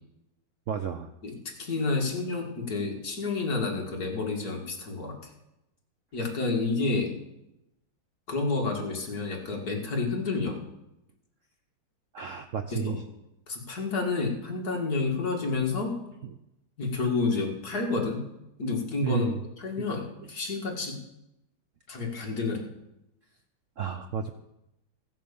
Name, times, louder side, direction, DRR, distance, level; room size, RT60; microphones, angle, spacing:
voice 1, 0.7-1.1 12.1-13.0 19.0-19.4 19.8-19.9 23.8-24.3, right 6 dB, 90° right, 8 dB, 0.6 m, -31 dB
voice 2, 1.2-5.3 6.1-7.2 8.3-10.6 12.7-13.0 13.5-16.0 16.8-18.2 18.6-19.3 19.6-21.0 21.9-22.7, left 3 dB, 50° left, 0 dB, 2.5 m, -29 dB
15.5 x 7.6 x 7.0 m, 0.89 s
omnidirectional pair, 2.2 m